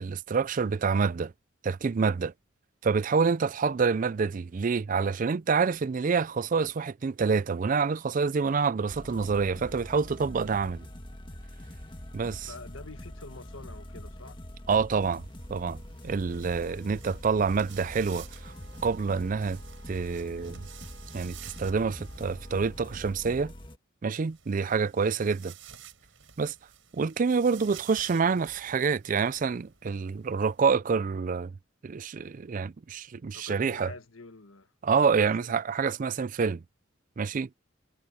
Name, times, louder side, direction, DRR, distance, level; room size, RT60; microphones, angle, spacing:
voice 1, 0.0-1.3 1.6-2.3 2.8-10.9 12.1-12.5 14.7-15.2 15.5-18.5 18.8-19.6 19.9-20.7 21.1-23.5 24.0-25.5 26.4-26.5 26.9-31.5 31.8-33.9 34.8-36.6 37.2-37.5, right 5 dB, 40° right, 0.4 m, -27 dB
sound 1, 8.9-23.8, equal, 25° left, 1.6 m, -44 dB
voice 2, 12.5-14.4 33.3-34.7 35.0-35.6, left 3 dB, 85° left, 1.6 m, -47 dB
sound 2, 15.0-23.1 24.1-30.6, right 9 dB, 70° right, 6.6 m, -52 dB
Wind instrument woodwind instrument, 18.4-23.0, right 4 dB, 90° right, 3.0 m, -58 dB
head